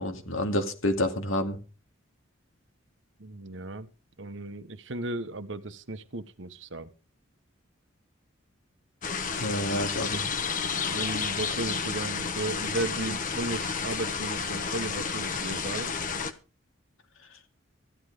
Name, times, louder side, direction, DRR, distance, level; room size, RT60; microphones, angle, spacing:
voice 1, 0.0-1.6 9.4-10.3, left 1 dB, 90° left, 2.7 m, -28 dB
voice 2, 3.2-3.9 4.2-6.9 10.9-15.9, right 2 dB, 65° right, 1.2 m, -35 dB
sound 1, 9.0-16.3, left 5 dB, 40° left, 1.3 m, -31 dB
15.0 x 11.5 x 5.0 m
head